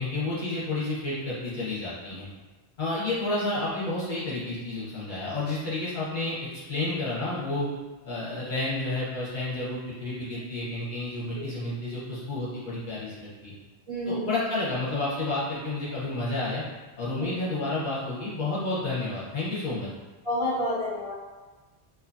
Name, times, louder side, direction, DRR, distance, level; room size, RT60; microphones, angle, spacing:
voice 1, 0.0-2.3 2.8-6.3 6.7-7.7 8.0-13.5 14.1-16.6 17.0-19.9, left 2 dB, 50° left, -8 dB, 0.8 m, -30 dB
voice 2, 13.9-14.3 17.1-17.3 20.2-21.1, left 1 dB, 35° right, -10 dB, 0.7 m, -29 dB
2.6 x 2.2 x 2.5 m, 1.3 s
omnidirectional pair, 1.1 m